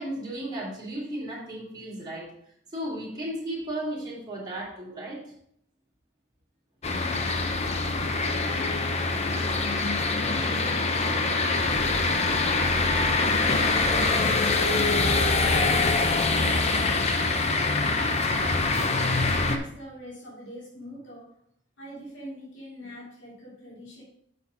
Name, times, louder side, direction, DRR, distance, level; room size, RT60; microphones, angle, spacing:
voice 1, 0.0-2.3 2.7-5.2 8.2-8.3 9.8-9.9, right 1 dB, 20° right, -6 dB, 3.5 m, -34 dB
sound 1, 6.8-19.6, left 3 dB, 35° left, 0.8 m, -24 dB
voice 2, 10.2-11.0 11.4-12.8 14.3-18.2 19.2-21.4 21.8-24.0, equal, 65° left, -5 dB, 3.1 m, -43 dB
6.8 x 5.7 x 5.4 m, 0.70 s
head